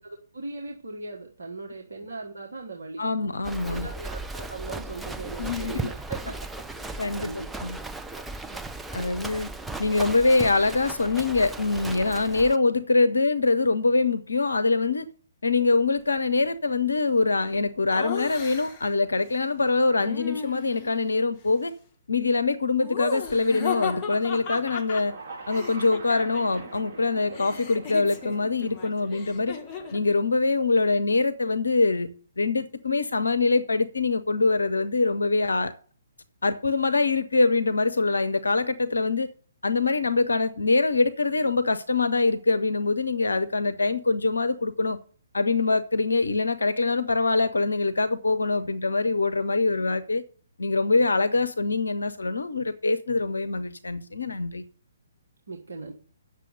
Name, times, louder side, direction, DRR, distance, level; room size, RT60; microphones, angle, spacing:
voice 1, 0.0-3.0 3.6-6.5 6.8-7.7 8.1-8.7 55.5-55.9, right 3 dB, 60° right, 1.5 m, -39 dB
voice 2, 3.0-3.9 5.4-5.9 7.0-7.3 7.6-7.8 8.9-9.5 9.8-15.1 15.4-21.7 22.1-25.1 25.5-29.6 29.9-32.1 32.4-35.7 36.4-39.3 39.6-45.0 45.3-50.2 50.6-54.6, left 3 dB, 65° left, 0.7 m, -24 dB
Livestock farm animals working animals, 3.4-12.6, right 2 dB, 5° right, 0.4 m, -36 dB
Laughter, 17.9-18.9 20.0-21.0 22.8-26.7 27.0-30.1, left 6 dB, 20° left, 1.4 m, -36 dB
sound 1, 25.0-31.2, right 3 dB, 35° right, 3.6 m, -45 dB
9.1 x 6.7 x 6.6 m
figure-of-eight pair, 130°, 0 cm